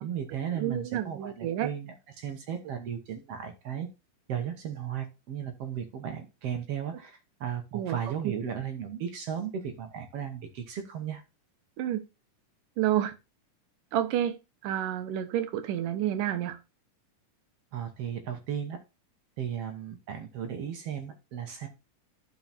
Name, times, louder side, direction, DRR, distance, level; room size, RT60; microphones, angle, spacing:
voice 1, 0.0-3.9 4.3-11.2 17.7-18.8 19.4-21.7, right 8 dB, 60° right, 1.7 m, -35 dB
voice 2, 0.6-1.7 7.7-8.0 8.2-8.3 11.8-12.0 12.8-13.1 13.9-14.4 14.6-16.6, right 11 dB, 85° right, 2.6 m, -29 dB
11.5 x 4.7 x 4.1 m
omnidirectional pair, 3.7 m